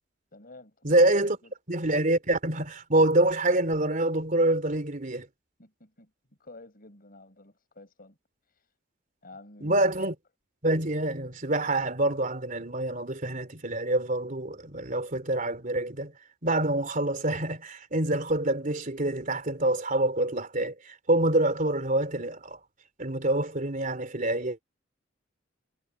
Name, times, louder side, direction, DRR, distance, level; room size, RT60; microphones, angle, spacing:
voice 1, 0.3-1.5 5.6-6.1 6.4-8.2 8.5-8.7 9.2-9.9, left 2 dB, 50° left, 5.7 m, -50 dB
voice 2, 0.8-1.4 1.7-5.3 9.6-10.1 10.6-16.1 16.4-22.6 23.0-24.6, right 1 dB, 45° right, 3.4 m, -26 dB
head